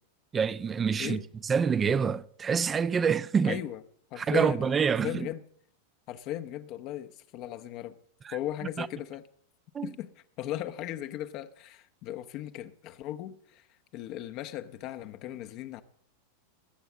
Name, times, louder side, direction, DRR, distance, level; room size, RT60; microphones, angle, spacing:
voice 1, 0.3-3.6 4.2-5.3 8.2-8.4 8.8-8.9 9.7-9.9, right 6 dB, 20° right, 0.6 m, -27 dB
voice 2, 3.5-3.8 4.1-4.7 5.0-5.4 6.1-7.9 8.3-9.2 9.8-10.1 10.4-13.6 13.9-15.8, left 13 dB, 40° left, 0.9 m, -37 dB
20.0 x 8.2 x 7.2 m
figure-of-eight pair, 90°, 0 cm